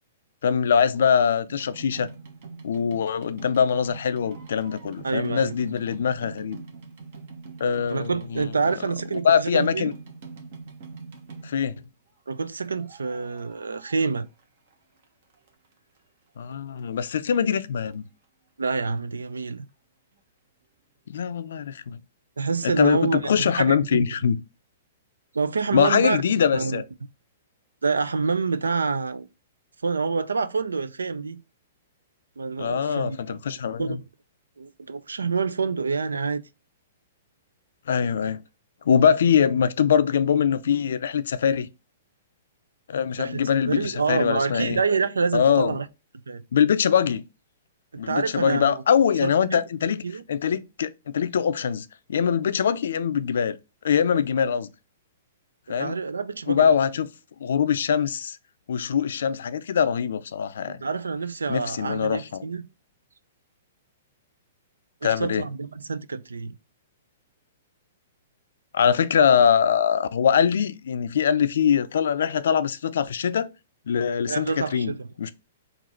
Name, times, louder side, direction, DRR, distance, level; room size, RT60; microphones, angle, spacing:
voice 1, 0.4-2.1 2.6-6.6 7.6-8.5 9.2-9.9 11.4-11.7 16.4-18.0 21.1-22.0 22.6-24.4 25.7-26.8 32.6-34.0 37.9-38.4 38.9-41.7 42.9-44.8 45.3-45.8 46.5-47.2 48.0-53.6 53.8-54.7 55.7-56.0 56.5-57.1 57.4-58.4 58.7-60.8 61.5-62.4 65.0-65.4 68.7-73.5 73.9-74.9 75.2-75.3, left 7 dB, 70° left, 0.4 m, -23 dB
sound 1, 1.5-11.8 12.6-14.7 15.0-16.0 16.5-16.6 16.8-16.9 17.1-17.2 17.6-17.7 17.9-18.0, right 4 dB, 60° right, 1.1 m, -43 dB
voice 2, 5.0-5.5 7.9-9.9 12.3-14.3 18.6-19.7 22.4-24.1 25.3-26.2 26.5-26.8 27.8-29.3 29.8-31.4 32.4-33.4 33.8-34.0 34.6-36.4 43.2-45.9 46.3-46.4 47.9-48.8 49.2-49.6 50.0-50.2 55.7-56.7 60.7-62.6 65.0-66.6 74.3-75.1, right 4 dB, 90° right, 0.4 m, -27 dB
3.9 x 2.5 x 4.3 m
hypercardioid pair, 125°, 0 cm